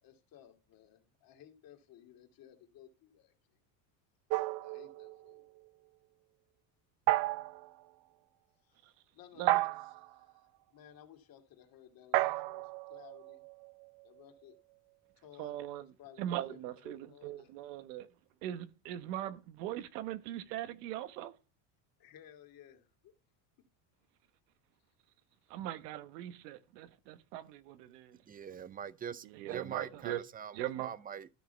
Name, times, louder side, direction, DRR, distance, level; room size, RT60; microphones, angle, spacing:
voice 1, 0.0-3.3 4.6-5.4 8.7-8.8 9.1-10.5 10.7-13.4 14.0-14.6 15.2-15.7 16.0-17.5 22.0-23.1, left 10 dB, 45° left, 2.5 m, -57 dB
sound 1, 4.3-5.4 7.1-7.7 9.5-10.1 12.1-13.9, right 17 dB, 55° right, 0.7 m, -32 dB
voice 2, 15.4-15.9 16.2-18.1 18.4-21.3 25.5-28.1 29.4-30.2 30.5-30.9, right 12 dB, 90° right, 1.4 m, -40 dB
voice 3, 28.1-31.3, right 8 dB, 20° right, 0.6 m, -44 dB
13.0 x 6.3 x 4.5 m
cardioid pair, 130°, 47 cm